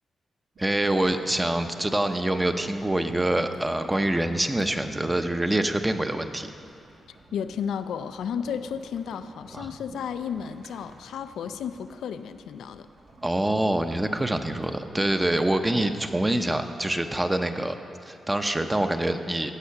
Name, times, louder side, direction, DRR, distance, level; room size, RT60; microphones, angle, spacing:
voice 1, 0.6-6.5 9.5-9.7 13.2-17.8 18.1-19.5, right 1 dB, 15° right, 7 dB, 0.7 m, -25 dB
sound 1, 0.6-16.1, right 1 dB, 75° right, 1.9 m, -49 dB
voice 2, 7.3-12.9, left 7 dB, 90° left, 11 dB, 0.4 m, -33 dB
15.0 x 6.3 x 5.8 m, 2.6 s
cardioid pair, 70°, 0 cm